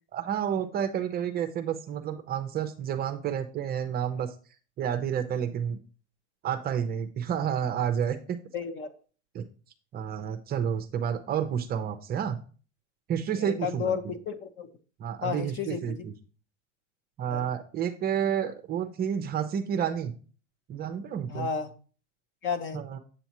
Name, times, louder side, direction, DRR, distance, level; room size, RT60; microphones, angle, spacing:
voice 1, 0.1-4.3 4.8-5.8 6.4-8.4 9.3-9.4 9.9-12.4 13.1-14.1 15.0-16.1 17.2-20.1 20.7-21.5 22.7-23.0, right 8 dB, 25° right, 7 dB, 0.7 m, -30 dB
voice 2, 8.5-8.9 13.4-14.7 15.2-15.8 17.3-17.5 21.3-21.7 22.4-22.8, left 6 dB, 30° left, 9 dB, 1.0 m, -32 dB
8.2 x 6.9 x 3.0 m, 0.37 s
supercardioid pair, 140°, 36 cm